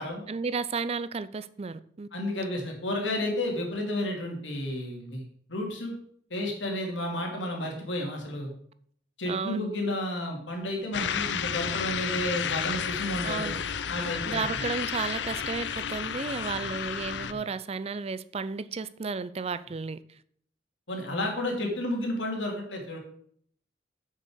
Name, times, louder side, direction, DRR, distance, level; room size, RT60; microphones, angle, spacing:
voice 1, 0.3-2.1 9.3-9.7 13.2-13.6 14.3-20.0, right 4 dB, 35° right, 0.4 m, -33 dB
voice 2, 2.1-5.2 5.5-5.9 6.3-8.5 9.2-13.6 13.9-14.4 17.3-17.4 20.9-23.0, left 1 dB, 85° left, 2.9 m, -31 dB
sound 1, 10.9-17.3, left 7 dB, 70° left, 0.6 m, -32 dB
7.5 x 6.6 x 6.4 m
head